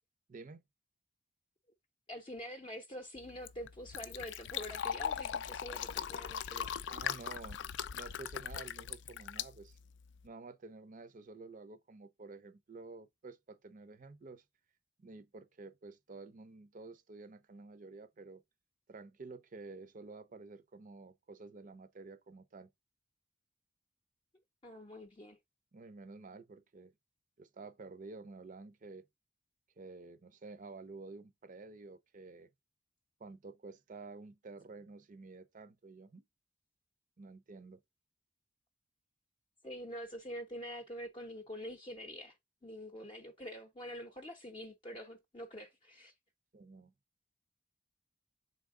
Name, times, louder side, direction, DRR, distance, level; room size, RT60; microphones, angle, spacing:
voice 1, 0.3-0.6 6.9-7.7 7.9-9.8 10.2-14.4 15.0-18.4 18.9-22.7 25.7-26.9 27.4-29.0 29.8-32.5 33.2-36.2 37.2-37.8 46.5-46.9, right 3 dB, 45° right, 0.5 m, -51 dB
voice 2, 2.1-6.7 24.6-25.4 39.6-42.4 42.6-46.1, equal, 30° left, 0.6 m, -46 dB
Fill (with liquid), 3.2-10.3, left 8 dB, 70° left, 0.4 m, -40 dB
4.0 x 3.6 x 3.6 m
head